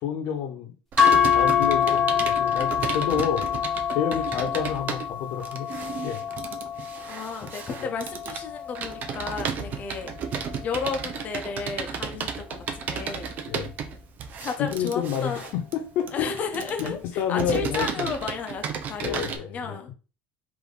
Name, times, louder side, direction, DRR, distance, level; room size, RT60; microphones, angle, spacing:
voice 1, 0.0-0.7 1.1-3.5 3.9-5.7 6.0-6.2 7.8-7.9 13.5-13.7 14.6-16.3 16.8-18.1 19.0-19.9, left 8 dB, 60° left, 1.1 m, -29 dB
Computer keyboard, 0.9-19.4, right 6 dB, 45° right, 0.6 m, -34 dB
sound 1, 1.0-9.2, left 8 dB, ahead, 1.3 m, -26 dB
voice 2, 7.1-10.1 10.6-13.3 14.4-15.4 16.1-19.9, left 5 dB, 40° left, 0.9 m, -33 dB
3.6 x 2.9 x 3.9 m
supercardioid pair, 120°, 4 cm